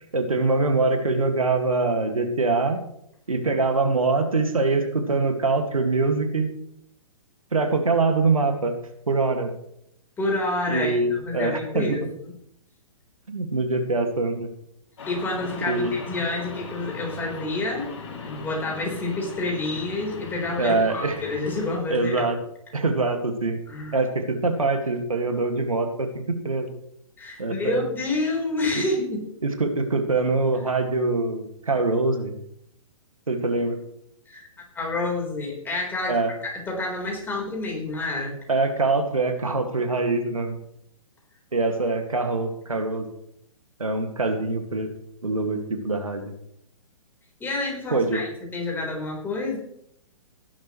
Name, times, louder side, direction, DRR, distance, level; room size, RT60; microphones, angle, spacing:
voice 1, 0.1-2.8 3.3-6.5 7.5-8.8 9.1-9.5 10.7-12.0 13.3-14.5 15.7-15.9 20.6-21.2 21.9-22.4 22.7-23.6 23.9-26.7 27.4-27.8 28.7-28.8 29.4-32.4 33.3-33.8 36.1-36.3 38.5-40.6 41.5-43.1 43.8-44.9 45.2-46.2 47.9-48.2, right 3 dB, 80° right, 5 dB, 2.2 m, -24 dB
voice 2, 10.2-12.3 15.1-17.9 18.2-22.3 23.7-24.0 27.2-29.3 34.3-34.5 34.7-36.2 36.4-38.3 47.4-49.6, left 2 dB, 10° left, -2 dB, 4.4 m, -28 dB
sound 1, 15.0-21.8, left 3 dB, 55° left, 5.1 m, -38 dB
17.0 x 11.5 x 3.2 m, 0.74 s
figure-of-eight pair, 125°, 18 cm